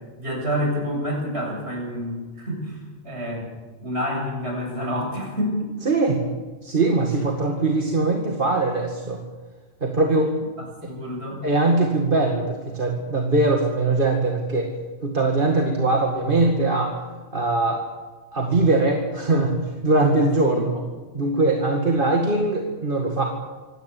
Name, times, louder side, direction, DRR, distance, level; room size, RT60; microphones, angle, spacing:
voice 1, 0.2-2.8 3.0-3.4 3.8-5.7 10.6-11.4 20.5-20.7, equal, 60° right, 0 dB, 7.6 m, -28 dB
voice 2, 5.9-6.2 6.6-9.2 9.8-10.3 11.4-14.7 15.0-16.9 17.3-17.8 18.3-19.5 19.8-20.7 21.1-23.3, right 2 dB, 45° right, 1 dB, 2.3 m, -21 dB
25.5 x 17.0 x 8.5 m, 1.3 s
omnidirectional pair, 1.2 m